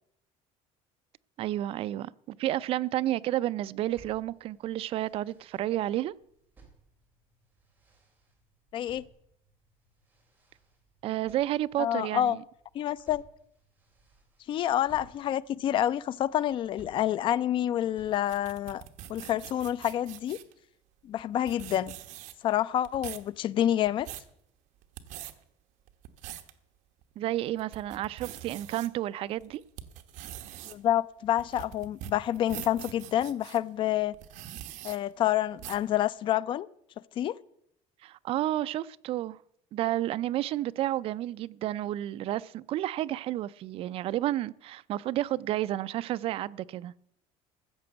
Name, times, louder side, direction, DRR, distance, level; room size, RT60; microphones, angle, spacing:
voice 1, 1.4-6.1 11.0-12.4 27.2-29.6 38.0-39.4 39.7-46.9, right 14 dB, 45° right, 0.4 m, -31 dB
sound 1, 3.8-20.1, right 3 dB, 15° right, 2.9 m, -61 dB
voice 2, 8.7-9.0 11.8-12.4 12.7-13.2 14.5-18.8 19.1-20.4 21.0-21.9 22.4-24.1 30.7-34.1 34.8-36.7 37.2-37.4, left 12 dB, 40° left, 0.4 m, -28 dB
sound 2, 18.1-20.5 21.2-21.3 21.5-22.5 22.8-23.3 23.8-24.3 24.8-25.3 25.9-26.5 27.0-27.1 27.6-28.9 29.4-33.6 34.1-35.0 35.6-35.9, right 12 dB, 65° right, 1.0 m, -43 dB
14.0 x 6.8 x 7.9 m
cardioid pair, 165°, 13 cm